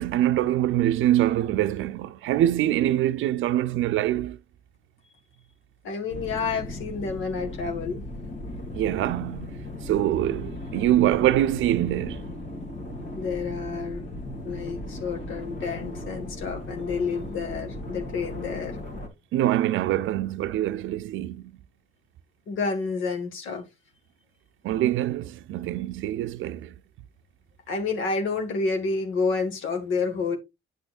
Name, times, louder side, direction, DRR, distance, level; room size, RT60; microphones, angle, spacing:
voice 1, 0.0-4.4 8.8-9.5 9.9-12.2 19.3-21.4 24.6-26.7, right 13 dB, 80° right, 0.5 m, -24 dB
voice 2, 5.8-8.0 13.1-14.1 14.4-18.8 22.5-23.6 27.7-30.4, left 4 dB, 80° left, 1.7 m, -29 dB
sound 1, 6.1-19.1, left 1 dB, 65° left, 2.2 m, -37 dB
9.3 x 6.1 x 2.4 m
cardioid pair, 90°, 20 cm